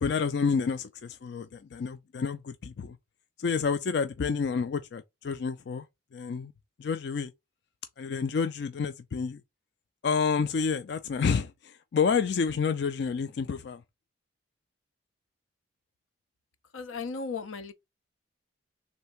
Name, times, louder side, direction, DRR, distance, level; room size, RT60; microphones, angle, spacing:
voice 1, 0.0-3.0 3.4-5.9 6.1-6.5 6.8-7.3 8.0-9.4 10.0-13.8, left 5 dB, 55° left, 0.3 m, -29 dB
voice 2, 16.7-17.7, left 4 dB, 90° left, 0.6 m, -35 dB
3.5 x 2.8 x 4.4 m
head